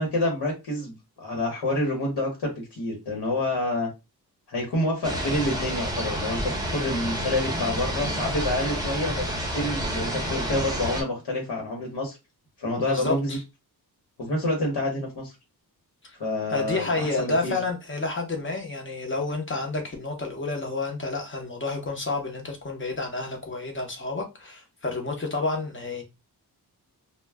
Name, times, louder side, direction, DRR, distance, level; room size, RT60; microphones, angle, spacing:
voice 1, 0.0-3.9 4.5-12.2 12.6-13.4 14.2-15.3 16.2-17.6, left 1 dB, 80° left, 1.0 m, -28 dB
sound 1, 5.0-11.0, equal, 10° right, 0.7 m, -29 dB
voice 2, 12.8-13.4 16.0-16.2 16.5-26.0, left 3 dB, 30° left, 0.7 m, -30 dB
2.2 x 2.1 x 3.3 m
wide cardioid pair, 155°, 39 cm